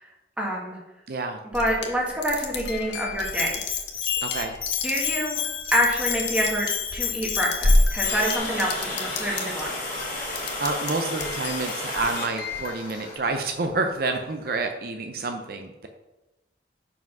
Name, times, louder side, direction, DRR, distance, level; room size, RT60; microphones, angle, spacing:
voice 1, 0.4-0.8 1.5-3.5 4.8-5.4 5.7-9.7, equal, 5° right, -2 dB, 1.6 m, -26 dB
voice 2, 1.1-1.4 4.2-4.5 10.2-15.9, right 3 dB, 55° right, 5 dB, 0.6 m, -29 dB
sound 1, 1.5-9.6 10.0-10.9 11.2-13.6, left 2 dB, 70° left, 1.2 m, -29 dB
Bell, 3.2-8.4, left 9 dB, 30° left, 0.6 m, -30 dB
Water, 8.0-13.2, left 2 dB, 45° left, 2.4 m, -33 dB
5.7 x 5.0 x 5.9 m, 1.0 s
head